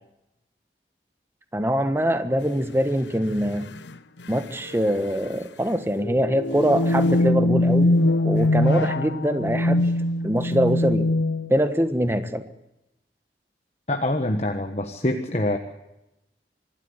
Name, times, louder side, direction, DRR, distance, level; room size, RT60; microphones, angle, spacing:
voice 1, 1.5-3.7 4.3-7.9 8.2-9.9 10.2-11.1 11.5-12.4, equal, 15° right, 9 dB, 1.3 m, -23 dB
sound 1, 2.5-2.6 3.6-3.9 4.2-4.3 4.7-5.0 6.0-11.7, left 1 dB, 90° left, 1.0 m, -22 dB
voice 2, 13.9-15.6, left 1 dB, 35° left, 5 dB, 1.4 m, -25 dB
25.5 x 12.5 x 9.7 m, 0.92 s
head